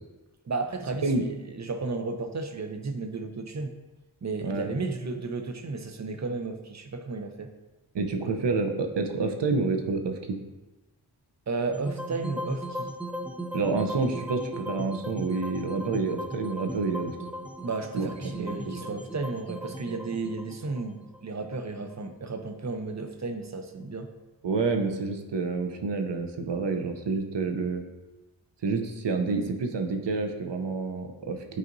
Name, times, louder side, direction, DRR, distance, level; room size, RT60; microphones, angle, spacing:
voice 1, 0.5-3.8 4.2-7.5 11.5-12.9 17.6-24.1, right 3 dB, 40° right, 7 dB, 0.7 m, -33 dB
voice 2, 7.9-10.4 13.5-17.2 17.9-18.9 24.4-27.8 28.6-31.6, right 4 dB, 80° right, 5 dB, 0.8 m, -28 dB
sound 1, 11.7-21.9, equal, 5° right, 0.4 m, -37 dB
9.2 x 4.2 x 2.6 m, 1.1 s
wide cardioid pair, 60°, 42 cm